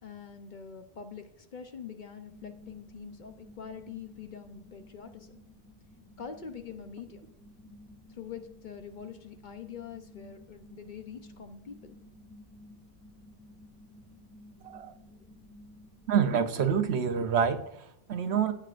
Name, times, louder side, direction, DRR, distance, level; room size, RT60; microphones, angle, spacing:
voice 1, 0.0-5.4 6.2-7.3 8.1-12.0 15.2-15.3, left 7 dB, 50° left, 7 dB, 0.8 m, -44 dB
sound 1, 2.3-16.4, left 1 dB, ahead, 1.9 m, -54 dB
voice 2, 16.1-18.5, right 7 dB, 75° right, 9 dB, 1.0 m, -27 dB
15.5 x 7.6 x 2.5 m, 0.75 s
omnidirectional pair, 1.1 m